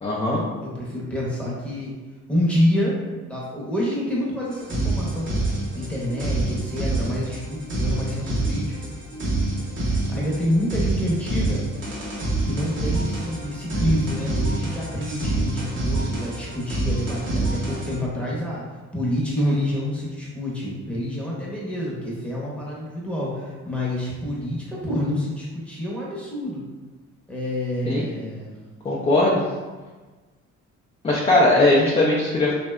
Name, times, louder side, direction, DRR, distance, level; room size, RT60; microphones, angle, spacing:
voice 1, 0.0-0.4 27.9-28.1 28.8-29.4 31.0-32.5, left 2 dB, 20° left, -5 dB, 0.4 m, -19 dB
voice 2, 0.6-1.9 2.3-3.0 3.2-5.4 5.7-8.7 9.8-11.6 12.4-18.6 18.9-26.6 27.3-28.5, left 1 dB, 5° left, -6 dB, 0.8 m, -27 dB
sound 1, 4.5-18.0, right 2 dB, 40° right, 0.7 m, -26 dB
2.7 x 2.1 x 2.2 m, 1.3 s
cardioid pair, 90°, 30 cm